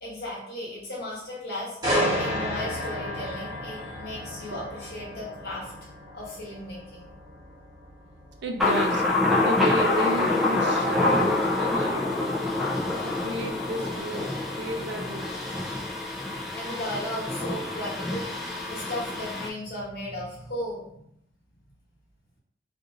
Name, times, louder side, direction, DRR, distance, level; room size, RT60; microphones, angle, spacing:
voice 1, 0.0-5.7 6.1-7.1 16.6-21.0, left 1 dB, 60° left, -5 dB, 1.2 m, -36 dB
sound 1, 1.8-15.7 16.1-16.3, equal, 20° right, 1.2 m, -34 dB
voice 2, 8.4-9.0 9.4-12.5 13.0-15.4, right 1 dB, 70° right, 3 dB, 0.5 m, -32 dB
Thunder, 8.6-19.5, left 2 dB, ahead, 0.3 m, -26 dB
2.5 x 2.5 x 2.9 m, 0.74 s
head